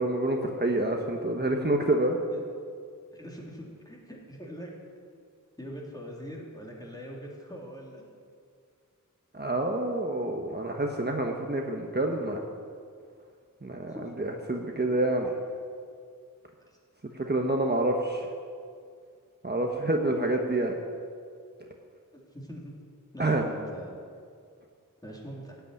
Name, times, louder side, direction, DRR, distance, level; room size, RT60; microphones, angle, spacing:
voice 1, 0.0-2.1 9.3-12.4 13.6-15.3 17.3-18.3 19.4-20.7 23.2-23.4, right 2 dB, 30° right, 1 dB, 1.3 m, -27 dB
voice 2, 2.1-2.4 3.1-4.8 5.6-8.0 13.9-14.1 16.7-16.8 22.3-22.7 23.1-24.0 25.0-25.6, equal, 10° left, -3 dB, 3.6 m, -42 dB
15.5 x 8.4 x 9.8 m, 2.2 s
wide cardioid pair, 80°, 33 cm